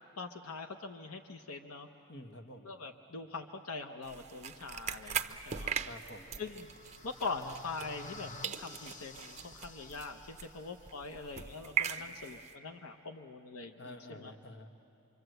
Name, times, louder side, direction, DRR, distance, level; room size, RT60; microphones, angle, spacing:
voice 1, 0.2-1.9 2.6-5.8 6.4-6.7 7.0-14.3, left 4 dB, 85° left, 6 dB, 0.8 m, -43 dB
voice 2, 2.1-2.7 5.8-6.4 11.8-11.9 13.8-14.7, left 1 dB, 55° left, 6 dB, 1.4 m, -49 dB
sound 1, 4.0-8.2 8.4-12.5, right 7 dB, 30° right, 0.7 m, -40 dB
sound 2, 5.9-10.9, left 3 dB, 35° left, 0.7 m, -52 dB
25.5 x 25.0 x 7.9 m, 2.9 s
head